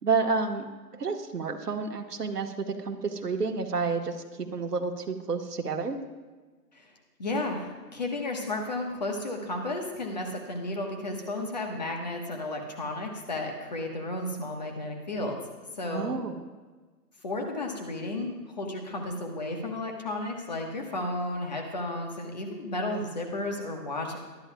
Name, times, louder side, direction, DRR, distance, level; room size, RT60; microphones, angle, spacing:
voice 1, 0.0-0.6 1.0-6.0 15.9-16.5, right 4 dB, 65° right, 4 dB, 1.5 m, -30 dB
voice 2, 7.2-15.4 15.8-16.2 17.2-24.2, left 2 dB, 25° left, 2 dB, 1.3 m, -33 dB
24.5 x 10.5 x 2.3 m, 1.3 s
hypercardioid pair, 170°, 50 cm